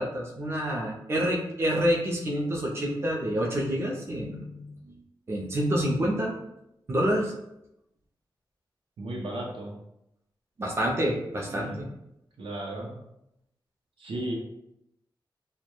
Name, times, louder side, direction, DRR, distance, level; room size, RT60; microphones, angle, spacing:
voice 1, 0.0-4.7 5.3-6.3 6.9-7.3 10.6-11.9, equal, 30° right, -2 dB, 0.4 m, -27 dB
voice 2, 9.0-9.8 11.5-11.9 12.4-13.0 14.0-14.3, right 1 dB, 80° right, -1 dB, 0.6 m, -35 dB
2.2 x 2.1 x 2.9 m, 0.84 s
wide cardioid pair, 155°, 9 cm